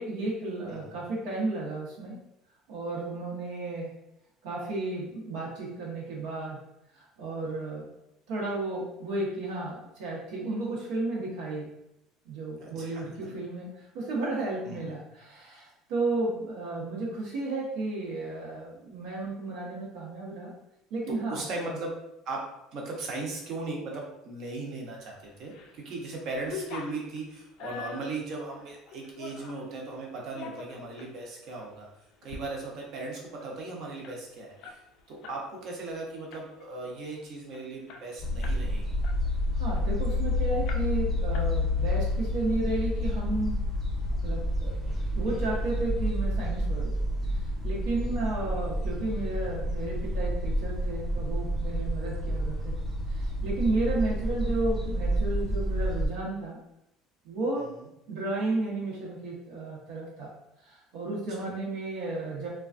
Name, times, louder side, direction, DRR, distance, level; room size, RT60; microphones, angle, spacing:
voice 1, 0.0-2.2 2.7-3.9 4.4-6.6 6.9-7.9 8.3-11.7 12.2-20.5 20.9-21.4 21.7-21.8 39.5-43.6 44.2-44.7 45.1-46.9 47.3-52.7 53.1-56.6 57.2-57.7 58.1-60.3 60.6-62.5, right 2 dB, 80° right, -5 dB, 0.8 m, -33 dB
voice 2, 12.6-13.0 14.6-14.9 21.1-21.9 22.3-31.9 32.2-34.8 35.1-39.0 48.0-48.3 57.7-57.9 61.4-61.5, right 3 dB, 45° right, -1 dB, 0.6 m, -38 dB
sound 1, 25.2-25.8 26.1-29.7 30.2-31.1 31.6-31.7 32.1-32.4 32.7-32.8 33.1-35.4 35.7-35.9 36.3-36.8 37.2-37.3 37.5-38.7 39.0-40.2 40.7-41.1 41.3-42.0, left 5 dB, 55° left, 0.3 m, -44 dB
sound 2, 38.2-56.1, left 1 dB, 10° left, 0.7 m, -29 dB
3.2 x 2.2 x 2.4 m, 0.83 s
cardioid pair, 175°, 0 cm